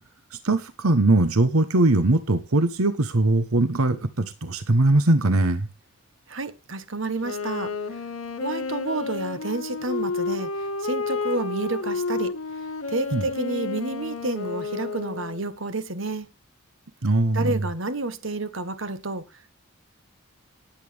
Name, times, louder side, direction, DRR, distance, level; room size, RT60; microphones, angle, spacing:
voice 1, 0.3-5.7 13.1-13.2 17.0-17.6, right 2 dB, 85° right, 1.1 m, -21 dB
voice 2, 6.3-7.7 8.4-12.3 12.9-16.3 17.3-19.2, right 2 dB, 60° right, 1.5 m, -30 dB
Wind instrument woodwind instrument, 7.2-15.5, left 3 dB, 75° left, 1.8 m, -31 dB
18.5 x 8.2 x 3.5 m
head